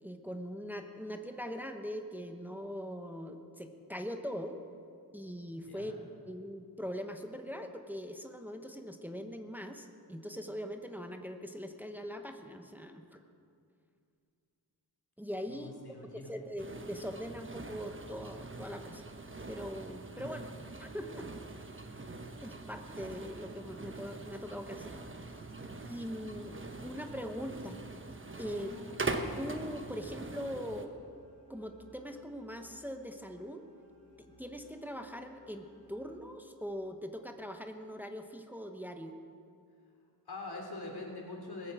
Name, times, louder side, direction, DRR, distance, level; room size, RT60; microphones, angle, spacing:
voice 1, 0.0-4.6 5.1-5.9 6.2-13.2 15.2-15.7 16.0-19.0 19.5-20.5 20.8-21.3 22.4-25.0 25.8-27.8 28.4-28.8 29.4-30.9 31.5-33.6 34.2-39.2, equal, 5° right, 5 dB, 1.0 m, -41 dB
voice 2, 5.7-6.0 15.5-16.3 28.5-28.8 40.3-41.7, left 2 dB, 85° left, 0 dB, 3.2 m, -44 dB
sound 1, 16.6-30.9, right 3 dB, 35° right, 1.1 m, -43 dB
sound 2, 25.7-37.0, right 1 dB, 90° right, 2.7 m, -61 dB
19.5 x 8.4 x 7.5 m, 2.4 s
wide cardioid pair, 75°, 37 cm